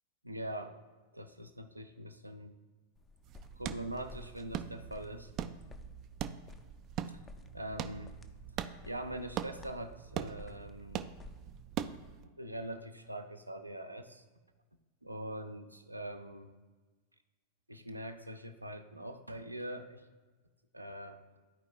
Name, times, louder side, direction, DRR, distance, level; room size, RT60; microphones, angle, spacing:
voice 1, 0.2-0.8 1.1-2.6 3.5-5.3 7.1-7.2 7.5-8.2 8.8-11.1 12.4-14.2 15.0-16.5 17.7-20.0 20.7-21.4, right 1 dB, 85° right, 6 dB, 0.5 m, -43 dB
sound 1, 2.9-11.6, left 4 dB, 20° left, 0.5 m, -56 dB
sound 2, 3.2-12.2, right 9 dB, 35° right, 0.3 m, -42 dB
13.5 x 4.6 x 2.3 m, 1.3 s
figure-of-eight pair, 90°, 0 cm